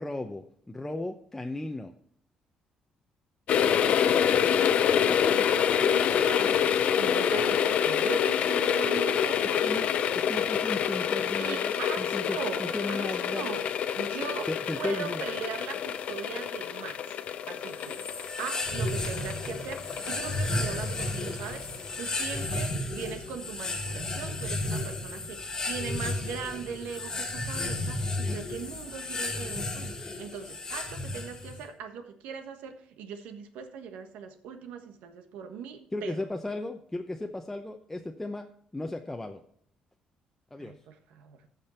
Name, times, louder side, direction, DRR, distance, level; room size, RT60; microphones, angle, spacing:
voice 1, 0.0-1.9 9.6-13.5 14.5-15.2 35.9-39.4 40.5-40.7, left 2 dB, 10° left, 3 dB, 0.7 m, -35 dB
sound 1, 3.5-22.1 22.4-22.5, left 8 dB, 60° left, 0.6 m, -27 dB
voice 2, 3.8-4.9 5.2-9.7 11.4-13.7 13.9-17.1 17.5-18.0 18.4-36.2 40.6-41.5, right 6 dB, 90° right, 7 dB, 1.3 m, -40 dB
sound 2, 17.8-31.6, left 2 dB, 25° left, 1.8 m, -33 dB
14.5 x 5.3 x 4.3 m, 0.63 s
cardioid pair, 105°, 2 cm